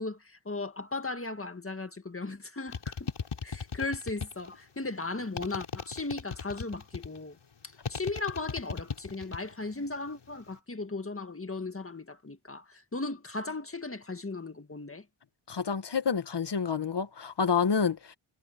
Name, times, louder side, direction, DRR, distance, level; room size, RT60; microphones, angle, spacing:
voice 1, 0.0-3.1 3.4-7.4 7.9-15.0, left 3 dB, 30° left, 1.9 m, -37 dB
sound 1, 2.7-4.6 5.4-7.2 7.8-9.5 9.8-10.4, left 5 dB, 90° left, 5.1 m, -37 dB
voice 2, 15.5-18.1, left 6 dB, 60° left, 1.5 m, -28 dB
wide cardioid pair, 95°, 48 cm